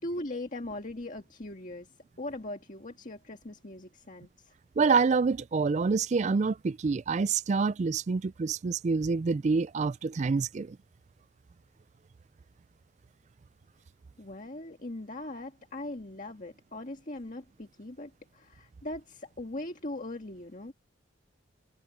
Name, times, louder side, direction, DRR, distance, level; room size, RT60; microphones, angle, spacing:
voice 1, 0.0-1.9 2.2-4.5 14.2-20.7, left 1 dB, 45° left, 1.7 m, -40 dB
voice 2, 4.8-10.8, right 4 dB, 35° right, 0.3 m, -27 dB
head